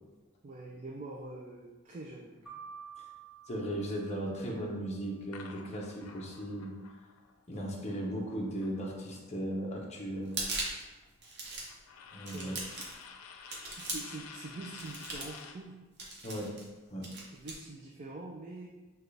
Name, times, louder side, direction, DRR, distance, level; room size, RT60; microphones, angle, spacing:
voice 1, 0.4-2.4 7.8-8.0 12.3-12.9 13.7-15.8 17.3-18.7, right 2 dB, 35° right, -1 dB, 0.4 m, -45 dB
sound 1, 2.5-4.6, right 6 dB, ahead, 1.2 m, -50 dB
voice 2, 3.5-6.7 7.5-10.4 12.1-12.5 16.2-16.6 16.9-17.1, right 1 dB, 30° left, -2 dB, 0.8 m, -37 dB
sound 2, 5.3-9.4 9.7-15.7, left 6 dB, 85° left, 0.4 m, -51 dB
sound 3, 10.2-10.9 11.2-11.8 12.3-13.0 13.5-14.2 14.8-15.4 16.0-16.7 17.0-17.5, right 2 dB, 55° right, 0.9 m, -39 dB
6.1 x 2.3 x 3.3 m, 1.2 s
head